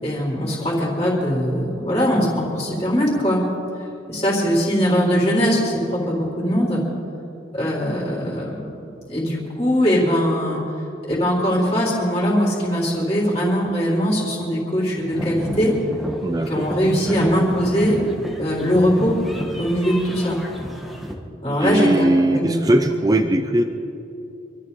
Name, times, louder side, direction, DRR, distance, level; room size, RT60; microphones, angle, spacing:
voice 1, 0.0-3.4 4.1-6.8 7.5-8.6 8.9-10.6 11.1-15.7 16.5-18.0 18.4-19.1 19.6-20.4 21.4-22.8, equal, 25° left, -6 dB, 3.9 m, -21 dB
sound 1, 15.1-21.1, equal, ahead, 1.4 m, -31 dB
voice 2, 16.2-16.6 21.6-23.6, right 1 dB, 20° right, 6 dB, 0.5 m, -19 dB
26.5 x 13.0 x 4.1 m, 2.8 s
head